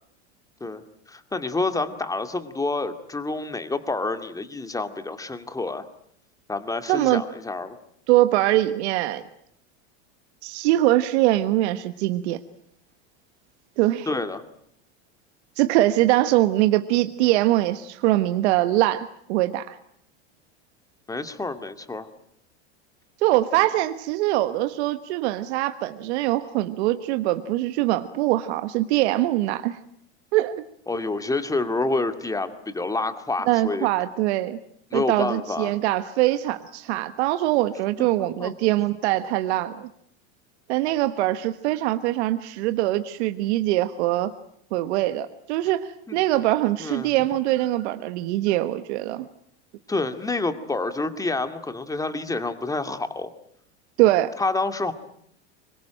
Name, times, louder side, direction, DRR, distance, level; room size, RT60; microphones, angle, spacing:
voice 1, 1.1-5.9 6.5-7.8 14.1-14.4 21.1-22.1 30.9-33.9 34.9-35.7 38.0-38.5 46.1-46.2 46.8-47.1 49.9-53.3 54.4-54.9, left 3 dB, 10° left, 9 dB, 2.3 m, -28 dB
voice 2, 6.9-7.2 8.1-9.2 10.4-12.4 13.8-14.1 15.6-19.8 23.2-29.8 30.3-30.6 33.5-34.6 34.9-39.9 40.7-44.3 44.7-49.3 54.0-54.3, right 15 dB, 70° right, 10 dB, 1.4 m, -23 dB
25.0 x 22.5 x 9.0 m, 0.69 s
supercardioid pair, 115°, 35 cm